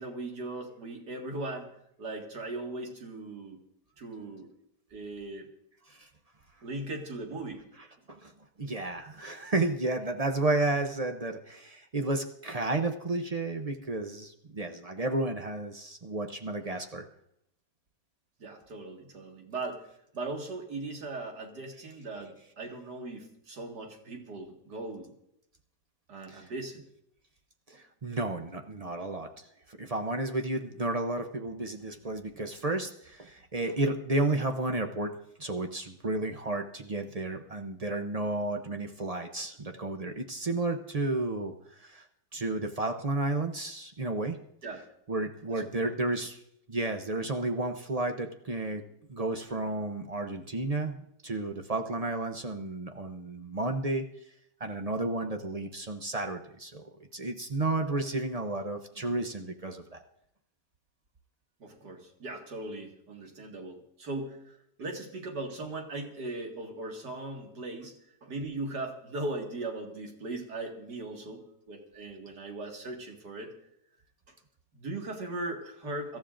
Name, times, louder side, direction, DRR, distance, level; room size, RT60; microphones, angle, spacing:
voice 1, 0.0-1.7 2.0-3.6 4.0-4.5 4.9-5.5 6.6-7.7 18.4-19.9 20.1-25.1 26.1-26.8 44.6-44.8 45.8-45.9 61.6-68.0 68.2-73.5 74.3-74.4 74.7-76.2, right 2 dB, 90° right, 1 dB, 2.5 m, -39 dB
voice 2, 8.6-17.1 26.3-26.4 27.7-29.3 29.7-35.1 35.4-42.0 42.3-44.4 45.1-46.4 46.7-48.8 49.1-54.0 54.6-56.8 57.1-60.0, right 2 dB, 40° right, 5 dB, 0.5 m, -32 dB
25.0 x 13.5 x 2.5 m, 0.76 s
omnidirectional pair, 1.7 m